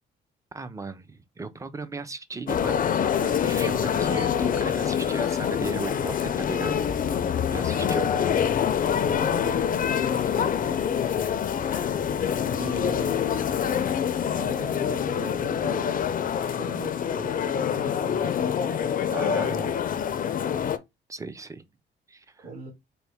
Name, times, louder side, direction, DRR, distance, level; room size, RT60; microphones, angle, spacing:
voice 1, 0.5-7.1 7.5-8.7 19.1-19.5 21.1-21.6 22.1-22.5, right 3 dB, 15° right, 0.5 m, -37 dB
sound 1, 2.5-20.8, left 8 dB, 45° left, 0.5 m, -26 dB
voice 2, 7.6-8.0 9.0-10.9 12.5-13.4 14.3-16.0 16.4-18.6 19.1-19.8 22.4-22.7, right 4 dB, 45° right, 2.1 m, -40 dB
4.2 x 2.1 x 3.4 m
cardioid pair, 90°, 20 cm